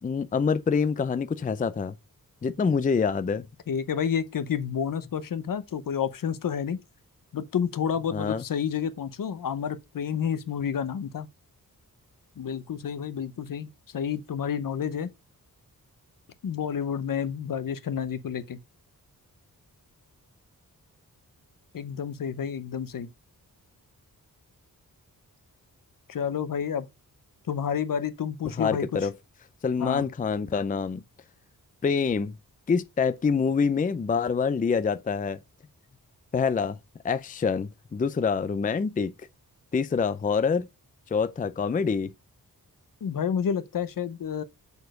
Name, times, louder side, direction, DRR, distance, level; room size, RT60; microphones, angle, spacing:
voice 1, 0.0-1.9 2.4-3.5 8.1-8.4 28.6-29.1 29.6-31.0 31.8-32.4 32.7-35.4 36.3-36.8 37.0-39.1 39.7-40.7 41.1-42.1, left 5 dB, 25° left, 0.4 m, -26 dB
voice 2, 3.7-6.8 7.3-11.3 12.4-15.1 16.4-18.6 21.7-23.1 26.1-26.9 27.5-28.9 29.8-30.1 43.0-44.4, left 7 dB, 70° left, 0.8 m, -30 dB
6.9 x 4.2 x 6.4 m
wide cardioid pair, 160°, 35 cm